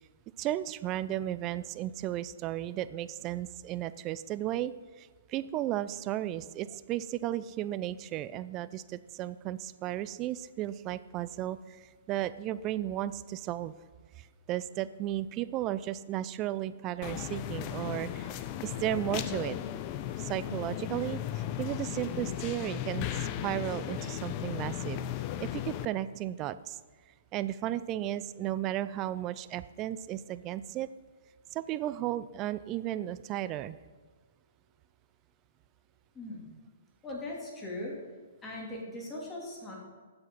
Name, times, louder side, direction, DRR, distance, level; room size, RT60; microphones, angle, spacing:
voice 1, 0.4-4.7 5.0-11.8 12.1-13.7 14.2-18.3 18.6-19.6 20.2-25.0 25.4-26.8 27.3-30.9 31.5-33.8, right 13 dB, 30° right, 15 dB, 0.4 m, -34 dB
sound 1, 17.0-25.9, left 11 dB, 35° left, 0.6 m, -36 dB
voice 2, 37.0-37.9 38.4-39.8, left 1 dB, 15° left, -2 dB, 2.9 m, -39 dB
8.2 x 7.8 x 5.5 m, 1.5 s
hypercardioid pair, 130°, 0 cm